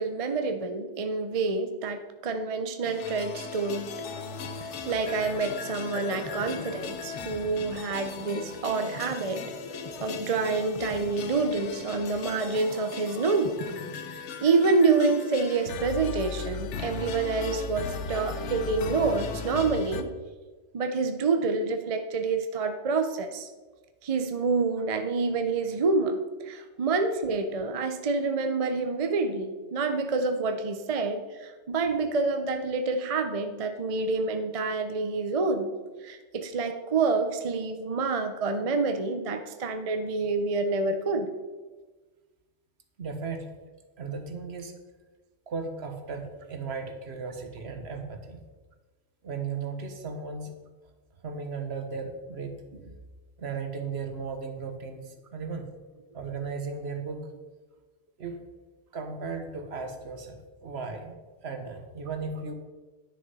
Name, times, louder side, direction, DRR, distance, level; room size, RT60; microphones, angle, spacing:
voice 1, 0.0-3.9 4.6-9.5 10.0-13.6 14.1-20.1 20.7-23.5 24.0-35.7 36.0-41.3, right 4 dB, 35° right, 7 dB, 0.7 m, -27 dB
sound 1, 2.8-20.0, left 5 dB, 75° left, 1.1 m, -38 dB
sound 2, 4.0-14.7, left 2 dB, 30° left, 1.0 m, -44 dB
voice 2, 43.0-43.6 44.0-44.7 45.5-48.4 49.2-50.5 51.2-53.0 53.4-55.7 56.1-57.3 58.2-58.4 58.9-61.2 61.4-62.5, right 4 dB, 65° right, 6 dB, 1.3 m, -36 dB
10.5 x 6.5 x 5.4 m, 1.3 s
omnidirectional pair, 1.2 m